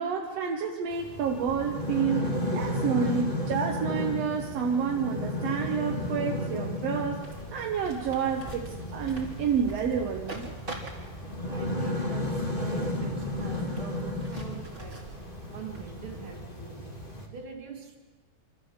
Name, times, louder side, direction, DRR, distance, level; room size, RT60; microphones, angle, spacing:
voice 1, 0.0-7.2 7.5-10.5, right 7 dB, 60° right, 1 dB, 1.8 m, -29 dB
sound 1, 0.9-17.3, left 1 dB, 15° left, 2.0 m, -33 dB
voice 2, 2.4-2.8 9.6-9.7 11.5-15.0 15.5-16.9 17.3-18.0, right 5 dB, 35° right, 1 dB, 3.2 m, -44 dB
sound 2, 7.2-16.5, right 2 dB, 15° right, 3.1 m, -44 dB
26.5 x 14.0 x 8.0 m, 1.4 s
omnidirectional pair, 4.3 m